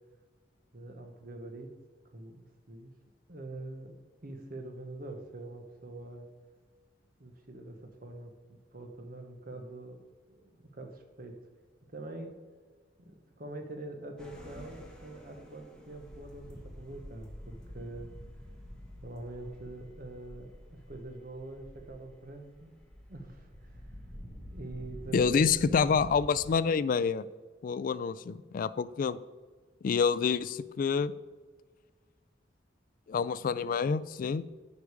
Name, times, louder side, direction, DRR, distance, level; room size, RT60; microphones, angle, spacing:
voice 1, 0.7-1.7 2.1-2.9 3.3-4.0 4.2-6.3 7.2-10.0 10.3-11.4 11.9-12.4 13.0-18.1 19.0-22.7 23.1-23.9 24.5-26.0, right 2 dB, 50° right, 5 dB, 1.1 m, -44 dB
sound 1, 14.2-26.5, equal, 5° left, 1.2 m, -48 dB
voice 2, 25.1-27.3 27.6-29.2 29.8-31.1 33.1-34.4, left 6 dB, 50° left, 17 dB, 0.3 m, -27 dB
9.7 x 5.0 x 4.8 m, 1.4 s
head